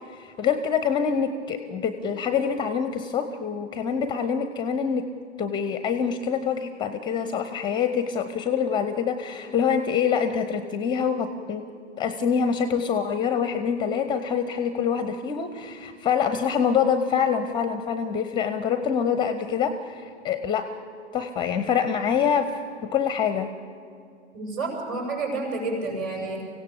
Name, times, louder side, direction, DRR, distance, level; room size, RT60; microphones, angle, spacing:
voice 1, 0.1-11.7 12.0-20.8 21.1-23.5, left 7 dB, 15° left, 11 dB, 0.6 m, -25 dB
voice 2, 24.3-26.4, right 3 dB, 35° right, 0 dB, 7.1 m, -29 dB
24.5 x 16.5 x 7.0 m, 2.5 s
figure-of-eight pair, 105°, 35 cm